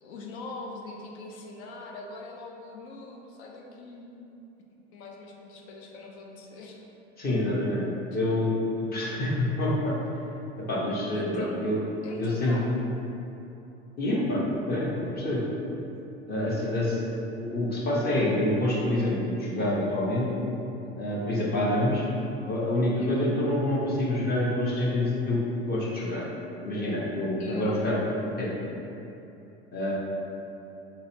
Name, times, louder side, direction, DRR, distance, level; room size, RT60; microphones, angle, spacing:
voice 1, 0.0-4.2 4.9-6.8 8.1-8.2 11.1-11.7 12.0-12.9 23.0-23.3 27.4-27.9, left 3 dB, 75° left, -1 dB, 0.5 m, -42 dB
voice 2, 7.2-7.9 8.1-8.5 8.8-9.9 10.7-11.8 12.2-12.5 14.0-15.4 16.3-17.0 17.4-20.3 21.0-22.0 22.5-25.4 25.7-26.2 26.6-28.7 29.7-29.9, left 1 dB, 30° left, -6 dB, 0.8 m, -27 dB
3.9 x 2.1 x 2.8 m, 2.9 s
hypercardioid pair, 90°, 33 cm